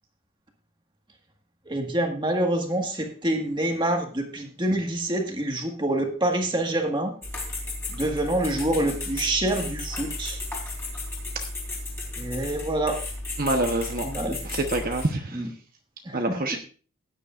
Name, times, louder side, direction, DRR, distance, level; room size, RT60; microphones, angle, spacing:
voice 1, 1.7-7.1 7.9-10.4 12.2-13.0 14.0-14.4 15.3-15.5 16.1-16.4, right 1 dB, 20° right, 3 dB, 1.7 m, -26 dB
sound 1, 7.2-15.1, left 2 dB, 10° left, 3.2 m, -34 dB
voice 2, 13.4-14.1 14.4-15.4 16.1-16.6, right 2 dB, 40° right, 4 dB, 1.0 m, -26 dB
15.5 x 9.9 x 2.5 m, 0.39 s
head